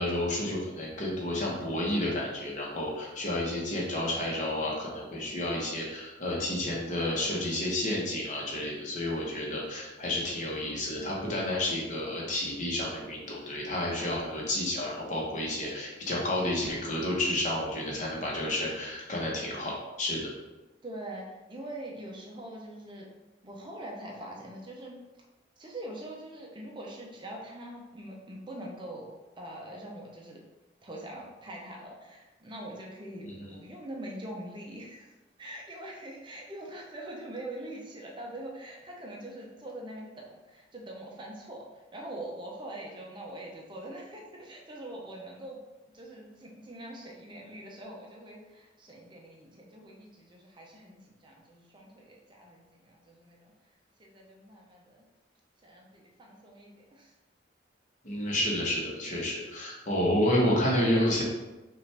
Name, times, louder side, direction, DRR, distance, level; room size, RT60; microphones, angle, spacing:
voice 1, 0.0-19.7 20.0-20.3 33.2-33.5 58.0-61.2, left 1 dB, 45° left, -3 dB, 1.0 m, -30 dB
voice 2, 20.8-23.1 23.4-25.0 25.6-29.1 29.4-30.4 30.8-45.6 45.9-53.5 54.0-55.0 55.6-57.1, right 1 dB, 25° right, -1 dB, 0.6 m, -43 dB
5.3 x 2.5 x 3.3 m, 1.1 s
head